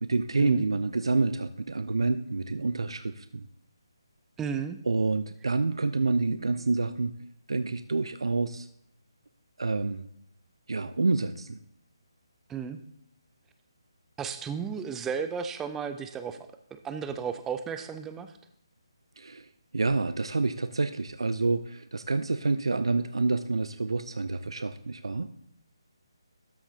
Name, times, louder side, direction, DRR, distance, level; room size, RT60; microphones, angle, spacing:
voice 1, 0.0-3.5 4.9-7.1 7.5-8.7 9.6-10.1 10.7-11.6 19.2-19.5 19.7-25.3, right 3 dB, 75° right, 11 dB, 0.4 m, -28 dB
voice 2, 4.4-4.8 12.5-12.8 14.2-18.3, right 6 dB, 10° right, 9 dB, 0.4 m, -34 dB
12.5 x 7.1 x 2.7 m, 0.74 s
figure-of-eight pair, 150°, 3 cm